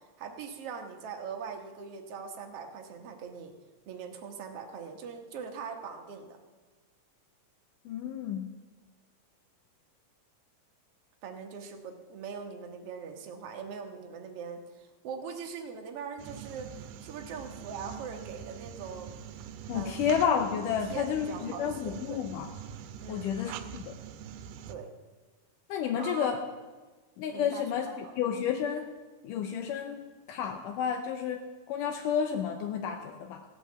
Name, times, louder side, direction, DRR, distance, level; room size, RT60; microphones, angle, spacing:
voice 1, 0.2-3.5 3.9-6.4 11.2-16.7 17.0-19.2 19.7-20.1 20.7-22.2 23.0-23.4 24.7-24.9 26.0-26.5 27.3-28.2, right 6 dB, 60° right, 4 dB, 1.8 m, -41 dB
voice 2, 7.9-8.5 19.7-22.5 23.1-24.0 25.7-26.4 27.2-27.9 28.2-28.9 29.2-33.4, left 8 dB, 80° left, 5 dB, 2.3 m, -31 dB
sound 1, 16.2-24.7, right 8 dB, 90° right, 2.3 m, -44 dB
16.5 x 5.7 x 8.4 m, 1.3 s
omnidirectional pair, 3.8 m